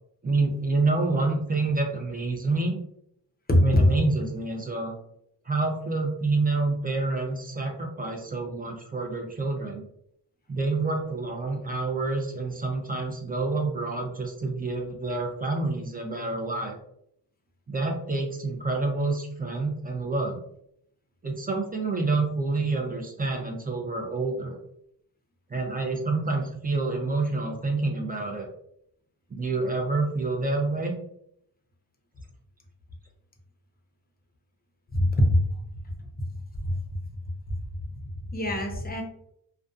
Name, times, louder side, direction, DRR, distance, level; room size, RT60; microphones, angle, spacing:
voice 1, 0.2-2.8 3.6-4.9 5.5-9.8 10.5-16.7 17.7-20.4 21.2-24.6 25.5-28.5 29.3-31.0, right 3 dB, 20° right, 2 dB, 0.5 m, -28 dB
voice 2, 3.5-4.0 34.9-35.4 36.6-36.8 37.5-37.6 37.9-38.0 38.3-39.0, left 1 dB, 20° left, 1 dB, 0.6 m, -22 dB
2.4 x 2.3 x 2.4 m, 0.72 s
cardioid pair, 70°, 44 cm